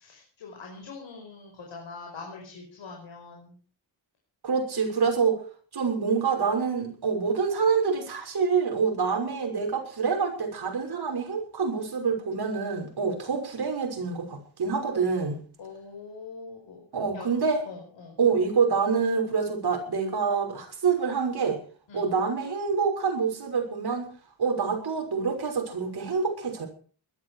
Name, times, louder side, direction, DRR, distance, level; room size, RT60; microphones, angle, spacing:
voice 1, 0.0-3.6 15.6-16.8 17.1-17.3 17.7-18.2 21.9-22.1, left 4 dB, 85° left, 1 dB, 5.4 m, -43 dB
voice 2, 4.4-5.4 5.7-15.4 16.9-17.6 18.2-21.6 21.9-24.1 24.4-26.7, right 5 dB, 60° right, 3 dB, 6.1 m, -26 dB
20.5 x 13.0 x 4.9 m, 0.42 s
wide cardioid pair, 130°, 44 cm